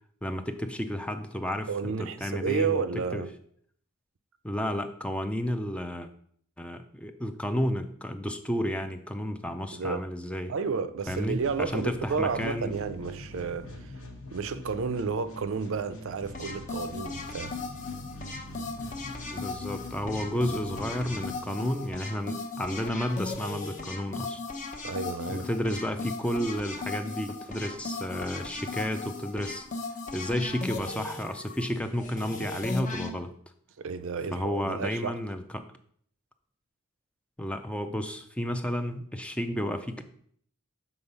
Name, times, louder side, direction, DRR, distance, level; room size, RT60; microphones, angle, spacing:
voice 1, 0.2-2.8 3.1-3.2 4.4-6.1 6.6-10.5 11.1-12.8 19.3-24.4 25.3-29.7 30.1-33.3 34.3-35.6 37.4-40.0, equal, 5° left, 0.4 m, -32 dB
voice 2, 1.7-3.3 9.7-10.0 10.5-14.0 14.3-17.6 24.8-25.5 33.8-35.2, right 5 dB, 65° right, 0.5 m, -31 dB
sound 1, 11.1-22.0, equal, 70° left, 1.3 m, -44 dB
sound 2, 16.3-33.1, left 3 dB, 35° left, 0.8 m, -37 dB
7.1 x 3.9 x 5.3 m
head